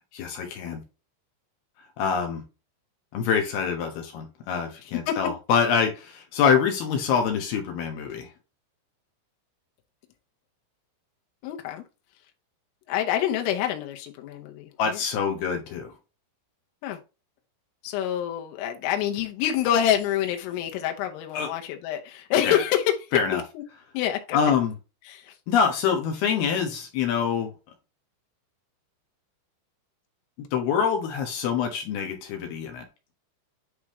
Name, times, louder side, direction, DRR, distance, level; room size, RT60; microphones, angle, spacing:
voice 1, 0.1-0.8 2.0-2.4 3.1-8.3 14.8-15.9 21.3-21.5 22.4-22.6 23.1-23.4 24.3-24.7 25.5-27.5 30.5-32.8, left 7 dB, 70° left, 2.7 m, -25 dB
voice 2, 11.4-11.8 12.9-15.0 16.8-17.0 17.8-22.9 23.3-23.6 24.0-24.4 25.1-25.4, left 11 dB, 90° left, 3.6 m, -27 dB
10.0 x 3.6 x 3.0 m
omnidirectional pair, 5.7 m